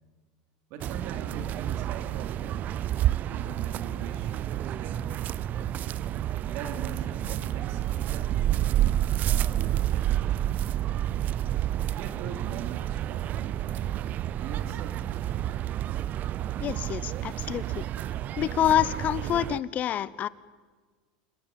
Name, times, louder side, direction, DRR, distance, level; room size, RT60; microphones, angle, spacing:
voice 1, 0.7-2.9 3.3-5.1 6.5-10.7 12.0-14.0 14.3-15.4, right 6 dB, 55° right, 7 dB, 4.0 m, -43 dB
sound 1, 0.8-19.6, right 12 dB, 40° right, 0.7 m, -29 dB
Musical instrument, 3.0-8.2, equal, 5° left, 4.4 m, -52 dB
voice 2, 16.6-17.8 18.4-20.3, left 11 dB, 35° left, 19 dB, 1.0 m, -27 dB
27.5 x 19.0 x 9.1 m, 1.5 s
supercardioid pair, 120°, 4 cm